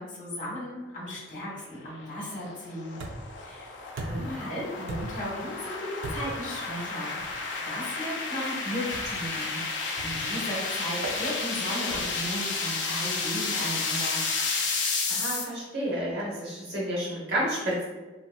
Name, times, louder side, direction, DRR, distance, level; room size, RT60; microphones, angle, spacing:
voice 1, 0.0-3.0 3.4-3.7 4.1-14.2, equal, 45° left, -4 dB, 1.1 m, -36 dB
sound 1, 1.5-15.4, left 4 dB, 65° left, 0.5 m, -32 dB
sound 2, 3.0-3.4 4.0-4.4 4.9-5.3 6.0-6.5 7.2-7.4 8.9-9.3 10.0-10.3 11.0-11.2 11.9-12.2, right 2 dB, 90° right, 0.5 m, -37 dB
voice 2, 3.9-4.5 15.1-17.8, right 1 dB, 60° right, -5 dB, 0.9 m, -31 dB
3.4 x 2.7 x 2.2 m, 1.2 s
head